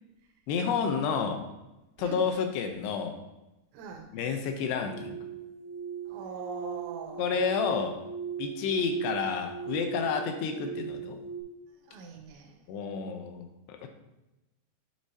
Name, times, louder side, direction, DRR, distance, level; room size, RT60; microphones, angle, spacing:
voice 1, 0.5-1.4 2.0-3.2 4.1-5.3 7.2-8.0 8.4-11.2 12.7-13.9, left 6 dB, 75° left, 5 dB, 2.7 m, -30 dB
voice 2, 3.7-4.2 6.1-7.5 11.8-12.6, right 5 dB, 80° right, 2 dB, 3.3 m, -42 dB
sound 1, 4.8-11.4, right 7 dB, 50° left, 3.3 m, -38 dB
8.8 x 7.9 x 2.8 m, 0.99 s
omnidirectional pair, 5.2 m